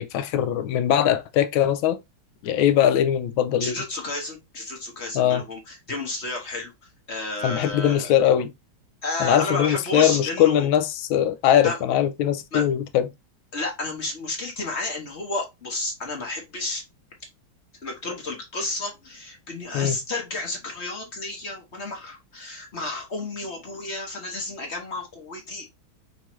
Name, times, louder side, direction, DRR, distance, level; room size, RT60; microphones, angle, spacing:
voice 1, 0.0-2.0 2.4-3.8 5.1-5.4 7.4-8.5 9.2-13.1 19.7-20.0, left 10 dB, 75° left, 1.3 m, -21 dB
voice 2, 3.6-6.7 7.1-8.1 9.0-10.7 11.6-11.8 12.5-12.6 13.5-16.8 17.8-25.7, left 2 dB, 45° left, 0.9 m, -31 dB
5.7 x 2.7 x 3.0 m
omnidirectional pair, 2.3 m